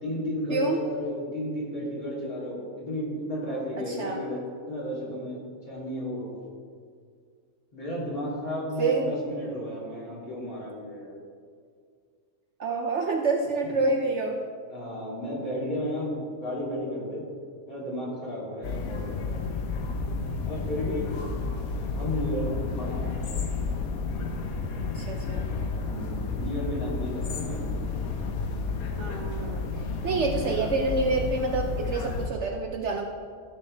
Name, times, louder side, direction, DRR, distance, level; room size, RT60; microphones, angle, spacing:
voice 1, 0.0-4.4 4.7-5.4 5.6-6.3 7.7-11.2 13.6-13.7 14.7-17.3 17.7-19.3 20.4-21.1 21.9-23.4 25.9-27.7, equal, 30° left, -8 dB, 3.1 m, -33 dB
voice 2, 3.9-4.2 8.8-9.2 12.6-14.4 24.9-25.5 29.0-29.7 30.0-33.1, right 3 dB, 60° right, 2 dB, 0.9 m, -27 dB
sound 1, 18.6-32.3, left 4 dB, 85° left, 1.3 m, -31 dB
15.0 x 6.5 x 3.3 m, 2.1 s
omnidirectional pair, 1.5 m